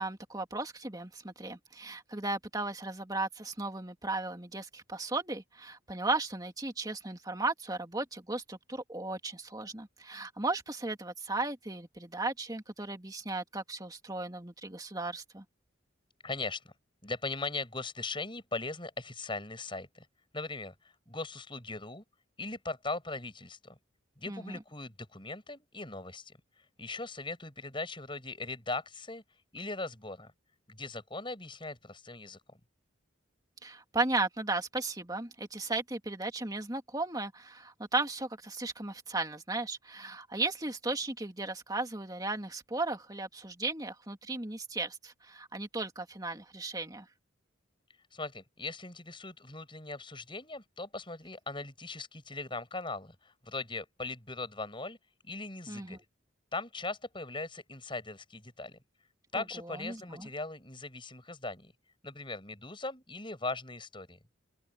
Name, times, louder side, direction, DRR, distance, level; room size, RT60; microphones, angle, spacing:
voice 1, 0.0-15.4 24.3-24.6 33.6-47.1 55.7-56.0 59.3-60.3, right 2 dB, 20° right, 2.6 m, -35 dB
voice 2, 16.2-16.7 17.0-20.1 20.3-22.0 22.4-23.8 24.2-26.4 26.8-29.2 29.5-30.3 30.7-32.6 48.1-55.0 55.2-56.0 56.5-58.8 59.3-61.7 62.0-64.2, left 3 dB, 25° left, 8.0 m, -39 dB
head